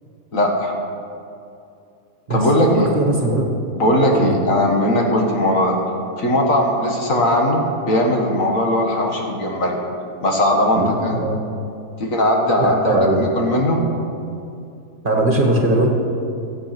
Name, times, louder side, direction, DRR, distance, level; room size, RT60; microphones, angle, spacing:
voice 1, 0.3-0.8 2.3-2.9 3.7-5.8 6.2-9.8 10.2-11.2 12.0-13.8, left 1 dB, 65° left, 0 dB, 2.0 m, -19 dB
voice 2, 2.8-3.5 4.1-4.3 10.7-11.4 12.6-13.2 15.0-15.9, right 1 dB, 35° right, 0 dB, 1.5 m, -19 dB
15.5 x 7.8 x 6.0 m, 2.6 s
omnidirectional pair, 1.5 m